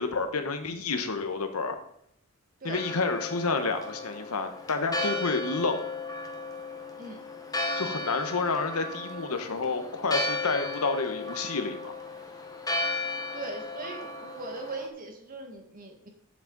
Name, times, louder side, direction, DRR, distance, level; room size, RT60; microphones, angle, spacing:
voice 1, 0.0-1.7 2.6-5.8 7.8-11.9, left 4 dB, 80° left, 7 dB, 1.1 m, -29 dB
Church bell, 2.7-14.9, left 2 dB, 15° left, 1.1 m, -35 dB
voice 2, 13.3-16.1, right 3 dB, 40° right, 3 dB, 1.7 m, -39 dB
9.7 x 7.3 x 4.0 m, 0.71 s
head